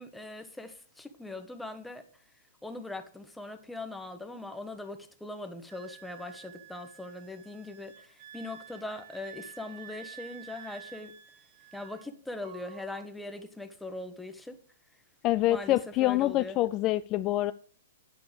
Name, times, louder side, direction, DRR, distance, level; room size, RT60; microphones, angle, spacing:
voice 1, 0.0-2.0 2.6-11.1 11.7-14.6 15.5-16.6, left 2 dB, 5° left, 1.1 m, -41 dB
Wind instrument woodwind instrument, 5.7-12.1 12.4-13.0, right 11 dB, 45° right, 1.1 m, -50 dB
voice 2, 15.2-17.5, left 15 dB, 30° left, 0.3 m, -26 dB
9.6 x 5.5 x 6.8 m
hypercardioid pair, 135°, 0 cm